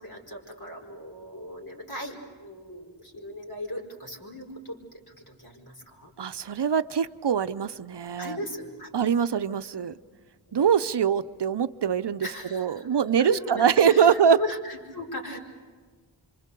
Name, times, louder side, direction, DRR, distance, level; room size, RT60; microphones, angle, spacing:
voice 1, 0.0-4.8 5.2-6.1 8.2-8.9 10.5-10.6 12.2-15.4, left 1 dB, 50° left, -1 dB, 4.9 m, -38 dB
voice 2, 6.2-8.4 8.9-9.9 10.5-14.4, right 7 dB, 60° right, 13 dB, 0.7 m, -23 dB
27.5 x 25.5 x 6.8 m, 1.5 s
wide cardioid pair, 60°, 46 cm